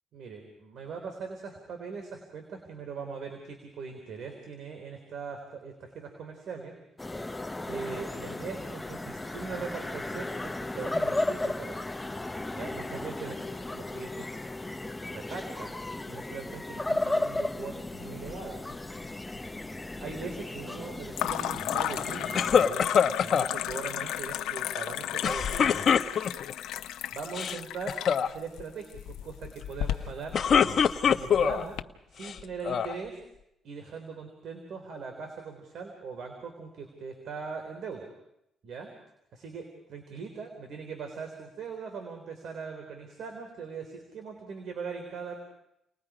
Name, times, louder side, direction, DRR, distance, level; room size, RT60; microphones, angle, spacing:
voice 1, 0.1-6.7 7.6-12.0 12.5-14.3 15.1-15.8 16.1-18.7 20.0-25.8 27.1-30.4 31.1-31.8 32.1-33.2 33.6-38.1 38.6-38.9 39.3-45.4, right 5 dB, 70° right, 4 dB, 3.7 m, -40 dB
sound 1, 7.0-22.7, left 2 dB, 15° left, 0.7 m, -35 dB
sound 2, 18.0-18.7 19.0-19.7 21.1-31.8, left 12 dB, 90° left, 0.8 m, -35 dB
sound 3, 22.4-23.5 25.2-26.5 27.2-27.6 27.9-28.3 30.1-31.6 32.2-33.0, left 7 dB, 55° left, 1.0 m, -24 dB
30.0 x 20.0 x 5.0 m, 0.82 s
cardioid pair, 90°, 0 cm